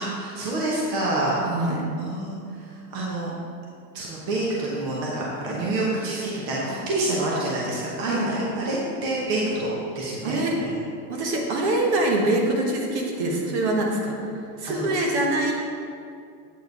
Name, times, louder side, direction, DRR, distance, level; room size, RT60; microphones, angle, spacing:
voice 1, 0.1-1.4 2.0-3.3 3.9-8.8 9.0-9.7 9.9-10.4 14.7-14.9, right 2 dB, 25° right, -5 dB, 0.9 m, -27 dB
voice 2, 1.5-1.8 8.1-8.3 10.2-10.5 11.1-14.1 14.6-15.5, right 2 dB, 40° right, 0 dB, 1.2 m, -24 dB
8.2 x 4.6 x 4.7 m, 2.4 s
supercardioid pair, 165°, 50 cm